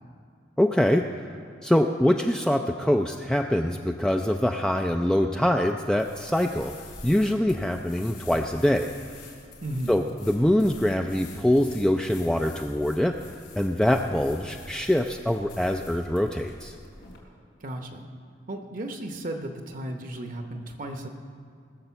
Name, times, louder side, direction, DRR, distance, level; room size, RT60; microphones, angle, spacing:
voice 1, 0.6-6.7 7.0-8.9 9.9-13.1 13.6-16.7, left 1 dB, 5° left, 3 dB, 0.3 m, -24 dB
sound 1, 6.0-17.2, left 3 dB, 65° left, 3.7 m, -47 dB
voice 2, 9.6-9.9 17.6-18.1 18.5-21.1, right 1 dB, 45° right, 5 dB, 0.8 m, -34 dB
19.5 x 6.6 x 7.0 m, 2.2 s
head